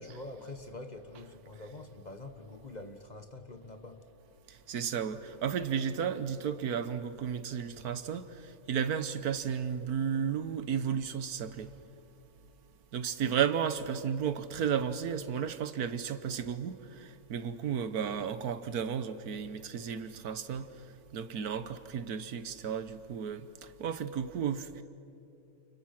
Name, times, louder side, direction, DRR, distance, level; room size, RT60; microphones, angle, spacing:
voice 1, 0.0-4.0, left 2 dB, 30° left, 1.4 m, -45 dB
voice 2, 4.5-11.7 12.9-20.7 21.1-23.5 23.8-24.8, right 7 dB, 85° right, 1.5 m, -33 dB
29.5 x 29.0 x 6.0 m
omnidirectional pair, 1.6 m